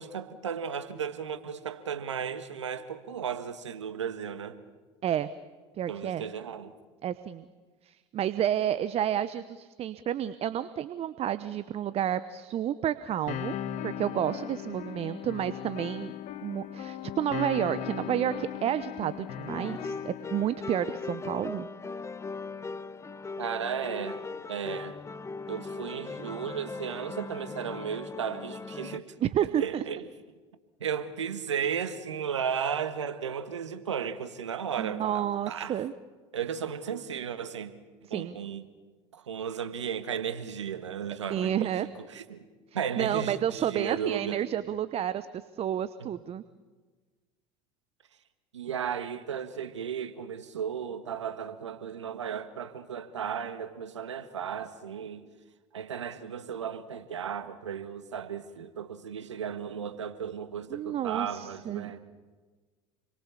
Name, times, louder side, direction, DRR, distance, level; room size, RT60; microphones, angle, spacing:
voice 1, 0.0-4.6 5.9-6.7 23.4-25.0 25.5-29.1 29.4-30.1 30.8-35.8 36.3-37.7 38.1-38.6 39.1-42.4 42.7-44.4 46.0-46.1 48.5-55.2 55.7-62.0, right 7 dB, 85° right, 1.6 m, -35 dB
voice 2, 5.8-6.3 7.0-7.4 7.8-13.6 13.8-16.1 16.4-21.7 29.2-29.8 34.8-35.9 38.1-38.4 41.3-41.9 43.0-46.4 60.7-62.0, right 10 dB, 40° right, 1.0 m, -30 dB
sound 1, 13.3-21.3, left 11 dB, 55° left, 1.4 m, -38 dB
sound 2, 19.5-29.0, left 4 dB, 20° left, 0.9 m, -39 dB
29.0 x 23.0 x 7.1 m
hypercardioid pair, 75°, 15 cm